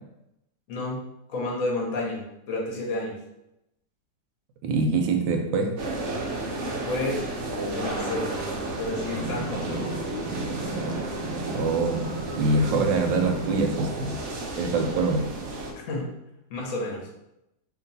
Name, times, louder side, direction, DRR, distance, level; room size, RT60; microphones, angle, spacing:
voice 1, 0.7-1.0 1.3-2.2 2.5-3.1 6.6-7.2 7.7-8.3 8.7-10.0 15.7-16.1 16.5-17.1, left 2 dB, 55° left, -2 dB, 1.1 m, -30 dB
voice 2, 4.6-5.7 11.5-12.1 12.4-14.2 14.6-15.3, right 3 dB, 80° right, 4 dB, 1.3 m, -24 dB
sound 1, 5.8-15.7, right 2 dB, 65° right, 0.7 m, -32 dB
sound 2, 9.1-12.3 12.6-13.6 14.2-14.3, right 1 dB, 85° left, 1.4 m, -35 dB
2.9 x 2.9 x 4.0 m, 0.86 s
omnidirectional pair, 2.0 m